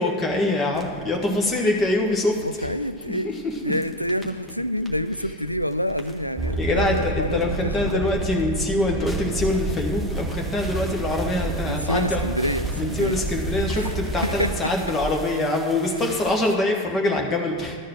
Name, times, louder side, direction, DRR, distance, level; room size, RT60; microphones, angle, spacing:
voice 1, 0.0-2.7 3.1-3.6 6.6-12.2 12.7-17.8, left 2 dB, 20° left, 1.5 m, -24 dB
sound 1, 0.7-16.6, right 2 dB, ahead, 1.4 m, -42 dB
voice 2, 2.4-3.3 3.6-8.1 11.6-13.2 13.7-13.9 14.2-14.7, equal, 90° left, 0.3 m, -27 dB
sound 2, 6.4-14.6, right 3 dB, 25° right, 1.1 m, -29 dB
12.0 x 4.6 x 7.6 m
figure-of-eight pair, 90°, 0 cm